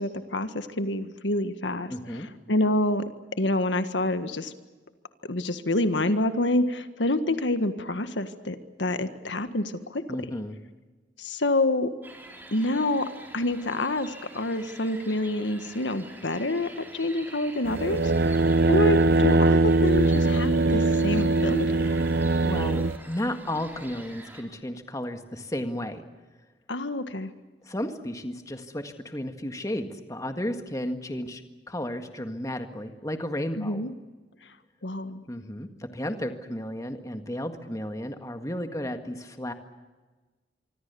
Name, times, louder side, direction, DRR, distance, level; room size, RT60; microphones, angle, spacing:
voice 1, 0.0-3.0 3.4-4.5 5.3-10.0 11.2-11.9 12.5-13.0 13.3-21.8 26.7-27.3 33.5-33.9 34.8-35.2, left 1 dB, 80° left, 10 dB, 1.6 m, -27 dB
voice 2, 1.9-2.3 10.1-10.6 22.4-26.0 27.7-31.4 31.7-33.9 35.3-39.5, left 1 dB, 20° left, 7 dB, 1.8 m, -33 dB
sound 1, 12.0-24.4, right 1 dB, 10° right, 4.0 m, -47 dB
sound 2, 17.7-23.0, right 2 dB, 60° right, 0.7 m, -22 dB
25.5 x 24.5 x 7.0 m, 1.3 s
head